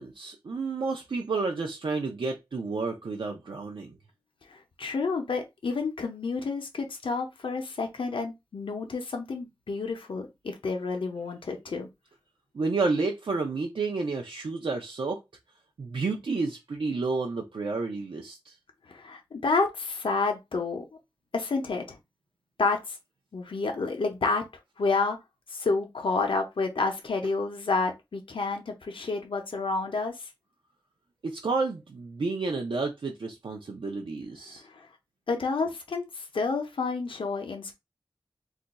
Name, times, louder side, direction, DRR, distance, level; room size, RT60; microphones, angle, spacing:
voice 1, 0.0-4.0 12.5-15.2 15.8-18.6 31.2-34.6, right 3 dB, 80° right, 0.5 m, -30 dB
voice 2, 4.5-11.9 18.9-20.8 21.3-22.0 22.6-23.0 23.3-24.4 24.8-25.2 25.5-30.3 34.6-34.9 35.3-37.7, left 4 dB, 90° left, 0.6 m, -29 dB
2.4 x 2.2 x 4.0 m
wide cardioid pair, 65°, 9 cm